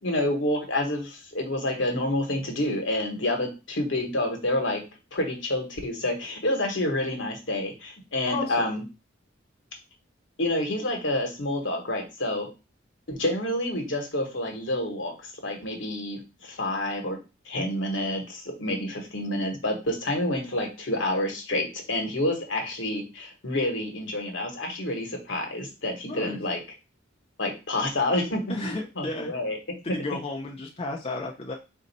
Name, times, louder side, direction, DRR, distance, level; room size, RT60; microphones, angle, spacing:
voice 1, 0.0-4.8 5.1-8.8 10.4-12.5 13.1-15.1 15.4-17.2 17.5-26.6 27.4-29.6, left 1 dB, 70° left, 2 dB, 1.3 m, -28 dB
voice 2, 8.2-8.8 26.0-26.4 28.5-29.3 29.8-31.5, left 2 dB, 30° left, 0 dB, 0.5 m, -33 dB
4.1 x 2.6 x 4.1 m, 0.28 s
head